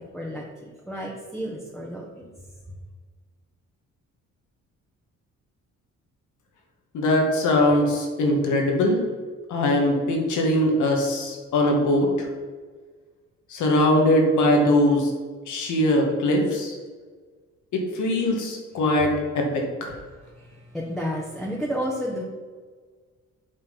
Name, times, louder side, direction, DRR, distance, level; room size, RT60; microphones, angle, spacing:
voice 1, 0.9-2.0 20.7-22.2, equal, ahead, -5 dB, 1.3 m, -30 dB
voice 2, 6.9-9.0 9.5-12.3 13.5-15.1 15.5-16.8 17.7-20.0, left 1 dB, 75° left, 1 dB, 1.8 m, -21 dB
8.4 x 3.9 x 5.4 m, 1.5 s
cardioid pair, 90°, 30 cm